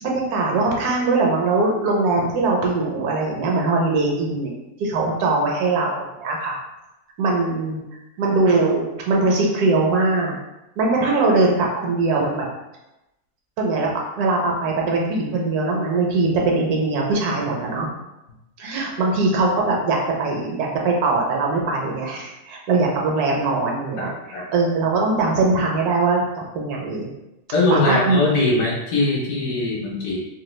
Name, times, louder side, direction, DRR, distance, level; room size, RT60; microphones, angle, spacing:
voice 1, 0.0-6.6 7.2-7.8 8.2-10.3 10.8-12.5 13.6-13.9 14.2-17.9 18.6-26.2 26.5-27.1 27.7-28.2, right 3 dB, 80° right, -1 dB, 1.2 m, -21 dB
voice 2, 24.0-24.4 27.5-30.2, left 2 dB, 65° left, -3 dB, 1.1 m, -21 dB
2.9 x 2.2 x 3.1 m, 0.95 s
omnidirectional pair, 1.6 m